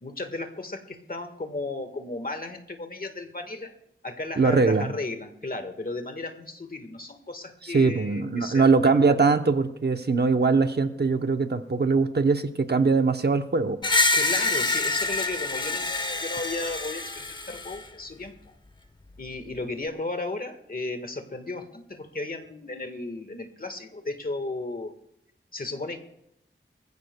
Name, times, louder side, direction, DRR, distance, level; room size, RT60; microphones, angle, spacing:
voice 1, 0.0-3.7 4.0-9.3 14.1-18.5 19.2-25.0 25.5-26.0, left 2 dB, 45° left, 7 dB, 1.4 m, -35 dB
voice 2, 4.4-4.9 7.6-13.8, right 4 dB, 50° right, 8 dB, 0.8 m, -22 dB
Screech, 13.8-17.8, left 3 dB, 20° left, 0.8 m, -26 dB
23.5 x 15.0 x 2.2 m, 0.76 s
wide cardioid pair, 75°, 21 cm